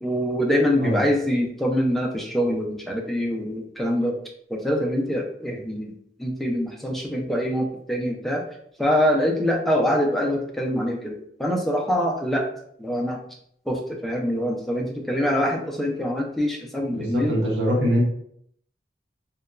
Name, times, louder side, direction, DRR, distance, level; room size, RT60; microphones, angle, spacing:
voice 1, 0.0-4.1 4.5-5.9 6.2-8.4 8.8-12.4 12.8-13.2 13.7-17.4, equal, ahead, -1 dB, 0.4 m, -24 dB
voice 2, 16.9-18.0, equal, 85° right, -3 dB, 0.9 m, -23 dB
2.8 x 2.2 x 2.3 m, 0.68 s
head